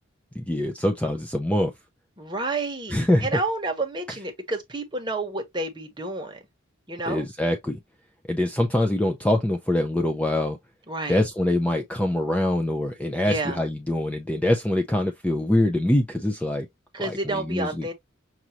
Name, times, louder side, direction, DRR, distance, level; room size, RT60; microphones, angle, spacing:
voice 1, 0.4-1.7 2.9-3.3 7.1-7.8 8.3-10.6 11.1-16.7 17.0-17.9, left 1 dB, 5° left, 0.4 m, -24 dB
voice 2, 2.2-6.4 6.9-7.2 10.9-11.2 13.3-13.6 16.9-17.9, right 2 dB, 25° right, 1.1 m, -30 dB
6.0 x 2.6 x 2.8 m
head